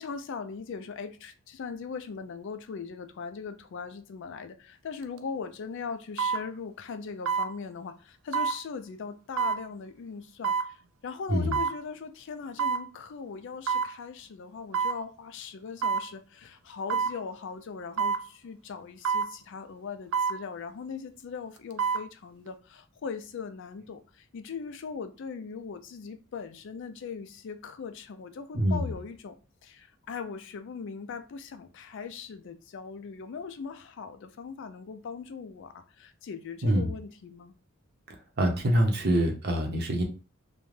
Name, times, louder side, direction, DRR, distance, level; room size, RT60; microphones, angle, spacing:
voice 1, 0.0-10.5 11.0-29.3 29.6-37.5, left 5 dB, 60° left, 9 dB, 0.4 m, -39 dB
sound 1, 5.0-5.2 6.2-6.4 7.3-7.5 8.3-8.6 9.4-9.6 10.4-10.7 11.5-11.8 12.6-12.9 13.7-13.9 14.7-15.0 15.8-16.1 16.9-17.2 18.0-18.2 19.0-19.3 20.1-20.4 21.6-22.0 22.5-22.6, right 6 dB, 80° right, 0.4 m, -27 dB
voice 2, 28.5-28.9 36.6-36.9 38.1-40.0, equal, 50° right, 3 dB, 0.7 m, -25 dB
2.5 x 2.2 x 3.1 m, 0.34 s
head